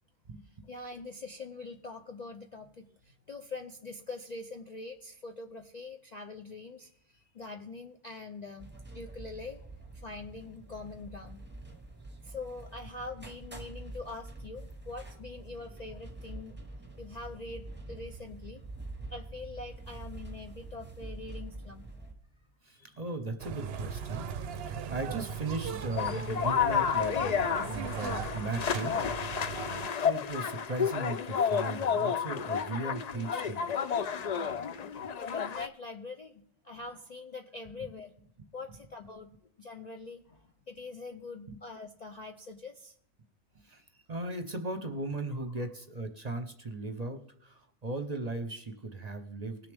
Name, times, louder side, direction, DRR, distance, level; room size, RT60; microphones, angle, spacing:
voice 1, 0.7-9.6 9.9-11.5 12.2-16.6 17.0-18.6 19.1-21.9 22.8-23.0 35.2-38.1 38.5-39.3 39.6-42.9 43.9-44.0, left 3 dB, 45° left, 4 dB, 0.6 m, -44 dB
sound 1, 8.6-22.1, right 2 dB, 10° right, 0.9 m, -46 dB
voice 2, 22.6-24.3 24.6-33.7 37.7-37.9 41.5-41.6 43.6-43.8 44.1-49.7, right 2 dB, 35° right, 7 dB, 0.9 m, -37 dB
sound 2, 23.4-29.9, right 7 dB, 60° right, 0.7 m, -39 dB
sound 3, 26.0-35.7, left 7 dB, 90° left, 0.3 m, -31 dB
20.0 x 6.7 x 3.5 m, 0.69 s
omnidirectional pair, 1.3 m